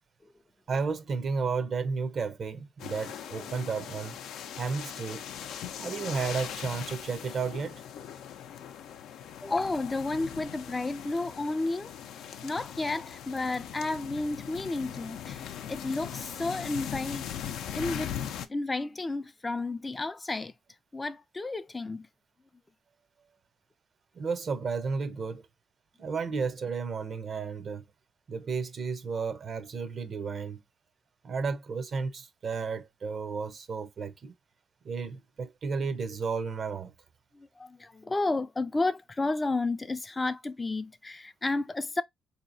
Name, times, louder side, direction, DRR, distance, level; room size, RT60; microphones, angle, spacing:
voice 1, 0.7-4.2 4.6-5.3 5.8-7.7 24.2-25.4 26.0-27.8 28.3-30.6 31.2-34.3 34.8-36.9, right 5 dB, 50° right, 0.6 m, -33 dB
sound 1, 2.8-18.5, left 9 dB, 85° left, 0.5 m, -40 dB
voice 2, 9.4-11.9 12.4-15.4 15.7-17.3 17.7-18.2 18.5-20.5 20.9-22.1 37.4-42.0, left 2 dB, 20° left, 0.4 m, -32 dB
4.0 x 2.8 x 2.6 m
cardioid pair, 90°, 0 cm